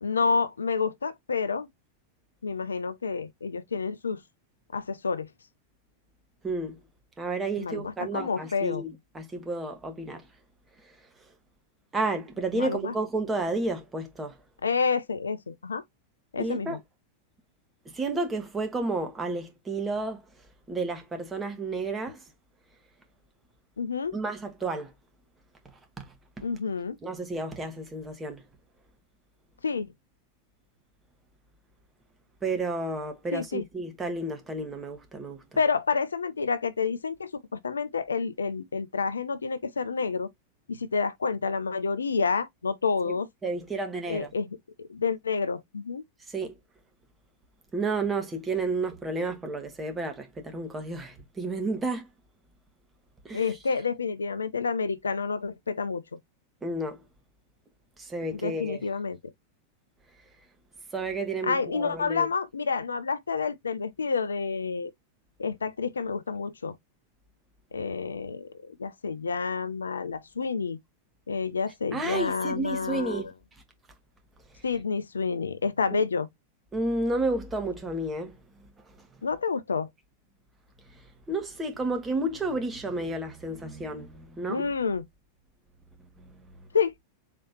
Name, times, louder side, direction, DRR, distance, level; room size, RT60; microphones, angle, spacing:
voice 1, 0.0-1.7 2.4-4.2 4.7-5.3 7.6-8.8 12.5-12.9 14.6-15.8 16.3-16.8 23.8-24.2 26.4-27.0 29.6-29.9 33.3-33.6 35.6-40.3 40.7-43.3 44.1-46.0 53.3-56.0 58.3-59.2 61.4-64.9 65.4-66.8 67.7-70.8 71.3-73.3 74.6-76.3 79.2-79.9 84.5-85.1 86.7-86.9, left 5 dB, 75° left, 0.4 m, -29 dB
voice 2, 6.4-6.8 7.2-10.2 11.9-14.4 16.4-16.8 17.9-20.2 20.7-22.2 24.1-24.9 26.0-26.1 26.4-26.5 27.0-28.4 32.4-35.4 43.1-43.2 43.4-44.3 46.3-46.5 47.7-52.1 53.2-53.4 56.6-57.0 58.0-58.8 60.9-62.3 71.9-73.3 76.7-78.4 81.3-84.7 86.2-86.7, right 2 dB, 15° right, 1.2 m, -31 dB
4.1 x 3.1 x 2.8 m
figure-of-eight pair, 90°, 0 cm